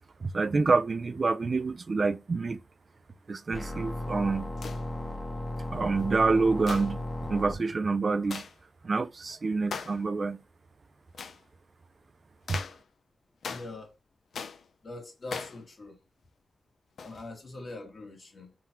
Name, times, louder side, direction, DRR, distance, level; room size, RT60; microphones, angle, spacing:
voice 1, 0.2-2.6 3.3-4.5 5.7-8.4 8.8-10.4 12.5-12.6, right 4 dB, 50° right, 0.4 m, -27 dB
sound 1, 3.5-7.5, left 1 dB, 25° left, 0.8 m, -35 dB
sound 2, 4.6-4.9 6.7-7.0 8.3-8.5 9.7-10.0 11.1-11.4 12.5-12.8 13.4-13.8 14.3-14.7 15.3-15.6 17.0-17.2, left 5 dB, 85° left, 0.4 m, -39 dB
voice 2, 13.5-13.9 14.8-15.9 17.0-18.5, left 2 dB, 50° left, 1.6 m, -43 dB
3.6 x 2.3 x 4.3 m
cardioid pair, 75°, 0 cm